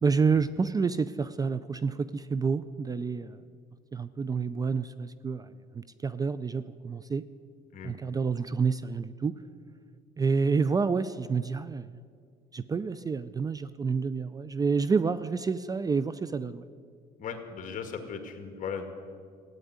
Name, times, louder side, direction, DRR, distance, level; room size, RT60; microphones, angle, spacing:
voice 1, 0.0-3.4 3.9-7.2 7.8-9.3 10.2-11.9 12.5-16.6, right 5 dB, 20° right, 15 dB, 0.4 m, -29 dB
voice 2, 17.2-18.8, left 6 dB, 50° left, 5 dB, 2.0 m, -37 dB
15.0 x 9.1 x 9.6 m, 2.1 s
cardioid pair, 110°, 17 cm